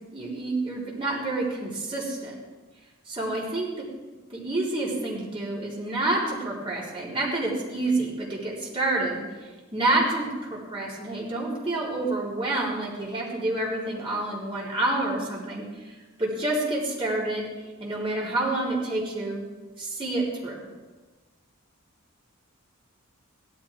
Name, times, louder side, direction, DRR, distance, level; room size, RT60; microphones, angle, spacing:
voice 1, 0.1-2.4 3.1-3.8 4.3-9.2 9.7-15.6 16.2-17.5 17.8-19.4 19.8-20.6, right 2 dB, 25° right, -6 dB, 3.7 m, -28 dB
16.5 x 13.0 x 3.5 m, 1.3 s
head